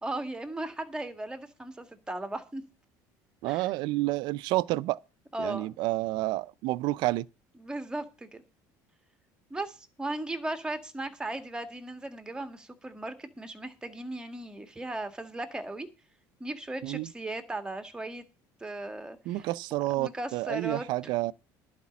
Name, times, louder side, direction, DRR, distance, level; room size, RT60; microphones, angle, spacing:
voice 1, 0.0-2.6 3.5-3.7 5.3-5.7 7.6-8.4 9.5-15.9 16.4-18.2 18.6-19.5 20.0-21.1, right 2 dB, 10° right, 1.8 m, -37 dB
voice 2, 3.4-5.0 5.4-7.3 16.8-17.1 19.3-21.3, right 18 dB, 70° right, 0.5 m, -29 dB
11.5 x 5.1 x 8.5 m
cardioid pair, 115°, 8 cm